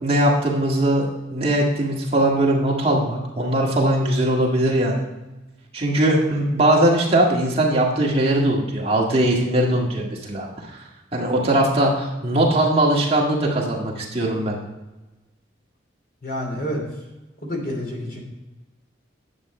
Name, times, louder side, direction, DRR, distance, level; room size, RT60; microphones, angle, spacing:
voice 1, 0.0-5.0 5.7-10.5 11.1-14.6, right 1 dB, 30° right, -3 dB, 1.8 m, -20 dB
voice 2, 16.2-16.8 17.4-18.2, equal, 50° left, 0 dB, 3.0 m, -28 dB
10.5 x 7.9 x 4.3 m, 1.1 s
head